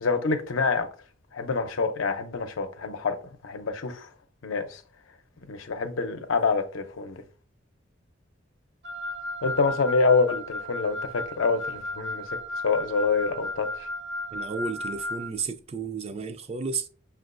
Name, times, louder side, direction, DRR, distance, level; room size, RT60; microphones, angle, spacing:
voice 1, 0.0-0.9 1.3-3.2 3.4-4.1 4.4-4.8 5.5-7.2 9.4-12.3 12.6-13.9, left 4 dB, 85° left, 0.6 m, -26 dB
Wind instrument woodwind instrument, 8.8-15.3, left 1 dB, 60° right, 0.7 m, -34 dB
voice 2, 14.3-16.9, right 5 dB, 30° right, 0.4 m, -32 dB
6.0 x 2.4 x 2.5 m
head